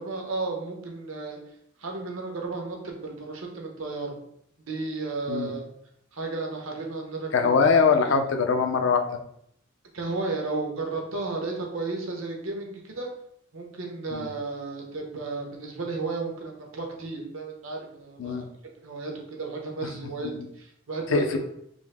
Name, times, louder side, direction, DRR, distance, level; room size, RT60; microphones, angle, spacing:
voice 1, 0.0-1.4 1.8-4.2 4.7-5.7 6.1-7.6 8.0-8.1 9.9-13.1 13.5-18.4 18.8-21.4, right 3 dB, 70° right, 1 dB, 0.9 m, -33 dB
voice 2, 7.3-9.1 14.1-14.3 18.2-18.5 20.2-20.5 21.1-21.4, left 5 dB, 60° left, 6 dB, 0.5 m, -22 dB
5.1 x 2.0 x 3.4 m, 0.72 s
head